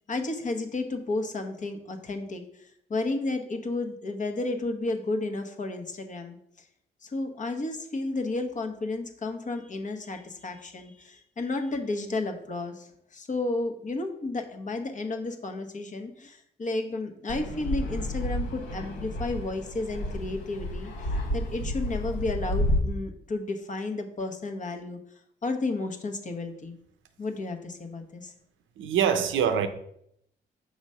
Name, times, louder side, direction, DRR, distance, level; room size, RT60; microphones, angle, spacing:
voice 1, 0.1-6.4 7.0-20.9 21.3-25.0 25.4-26.7 27.2-28.3, left 2 dB, 40° left, 1.0 m, -32 dB
Fixed-wing aircraft airplane, 17.3-22.8, left 1 dB, 80° left, 1.3 m, -31 dB
voice 2, 28.8-29.7, right 8 dB, 80° right, 0.7 m, -24 dB
6.3 x 3.1 x 5.5 m
cardioid pair, 90°, 20 cm